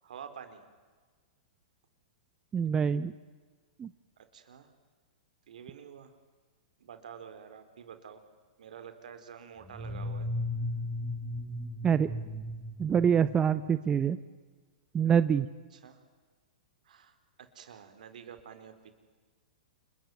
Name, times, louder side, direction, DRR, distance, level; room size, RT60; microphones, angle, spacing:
voice 1, 0.0-0.6 4.2-4.7 5.5-6.2 6.8-8.2 8.6-10.3 15.7-16.0 16.8-18.9, right 7 dB, 70° right, 9 dB, 4.0 m, -48 dB
voice 2, 2.5-3.1 3.8-3.9 11.8-12.1 12.8-14.2 14.9-15.5, right 7 dB, 20° right, 13 dB, 0.8 m, -25 dB
sound 1, 9.6-13.7, left 1 dB, ahead, 5.2 m, -36 dB
28.5 x 22.0 x 9.4 m, 1.4 s
hypercardioid pair, 120°, 4 cm